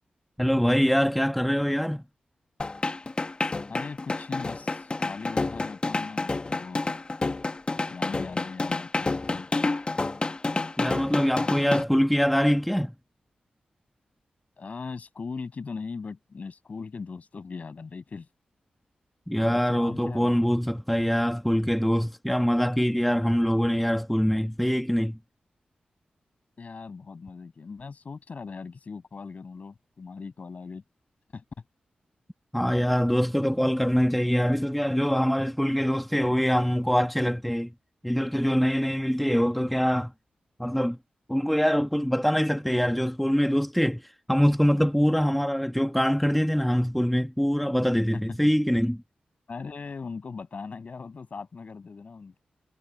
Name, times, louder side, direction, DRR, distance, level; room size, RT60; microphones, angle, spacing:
voice 1, 0.4-2.0 10.8-12.9 19.3-25.2 32.5-37.7 38.0-40.1 40.6-41.0 41.3-44.0 44.3-49.0, equal, 5° left, 1.3 m, -24 dB
sound 1, 2.6-11.8, left 3 dB, 35° left, 1.5 m, -29 dB
voice 2, 3.7-6.9 7.9-9.5 14.6-18.3 19.4-20.4 26.6-30.8 31.3-31.4 48.1-48.5 49.5-52.4, left 4 dB, 55° left, 7.3 m, -39 dB
cardioid pair, 80°, 3 cm